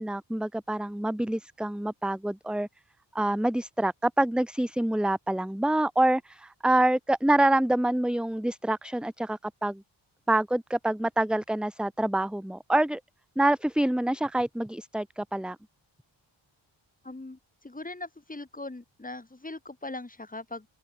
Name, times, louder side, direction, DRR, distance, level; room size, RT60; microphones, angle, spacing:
voice 1, 0.0-2.7 3.1-9.8 10.3-13.0 13.4-15.6, right 1 dB, ahead, 1.2 m, -26 dB
voice 2, 17.0-17.4 17.6-20.7, left 2 dB, 15° left, 4.1 m, -40 dB
open air
wide cardioid pair, 125°, 47 cm